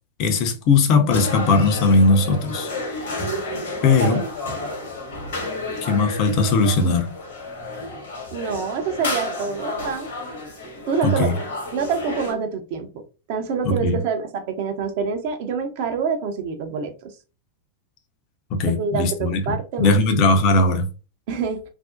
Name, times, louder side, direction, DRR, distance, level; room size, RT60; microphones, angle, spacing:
voice 1, 0.2-2.7 3.8-4.2 5.8-7.1 11.0-11.4 13.6-14.0 18.5-19.4 19.8-20.9, left 3 dB, 40° left, 0.5 m, -18 dB
sound 1, 1.1-12.3, left 2 dB, 65° left, 0.9 m, -31 dB
voice 2, 8.3-10.1 10.9-11.3 11.7-12.9 13.3-17.1 18.8-20.0 21.3-21.6, right 5 dB, 50° right, 0.5 m, -26 dB
2.5 x 2.0 x 2.4 m
figure-of-eight pair, 90°, 0 cm